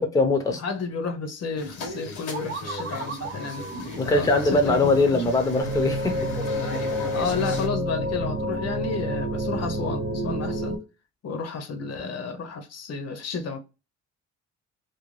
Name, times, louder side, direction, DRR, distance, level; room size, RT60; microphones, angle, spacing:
voice 1, 0.0-0.6 3.7-6.3, left 2 dB, 10° left, 0.5 m, -22 dB
voice 2, 0.6-5.2 7.1-10.8 11.2-13.6, left 4 dB, 55° left, 0.7 m, -32 dB
sound 1, 1.6-7.7, left 4 dB, 85° left, 0.9 m, -36 dB
sound 2, 2.3-6.1, right 5 dB, 40° right, 0.5 m, -39 dB
sound 3, 5.6-10.8, equal, 90° right, 0.9 m, -28 dB
2.5 x 2.2 x 3.1 m
cardioid pair, 90°, 30 cm